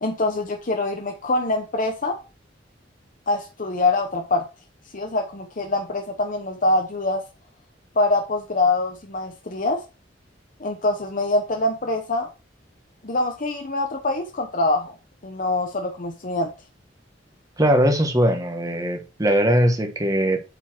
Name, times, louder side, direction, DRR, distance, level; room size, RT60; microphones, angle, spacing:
voice 1, 0.0-2.2 3.3-4.5 4.9-7.2 8.0-9.8 10.6-12.3 13.0-14.9 15.2-16.5, left 2 dB, 45° left, 0.9 m, -24 dB
voice 2, 17.6-20.4, equal, 20° right, 1.4 m, -20 dB
8.4 x 4.5 x 4.5 m
head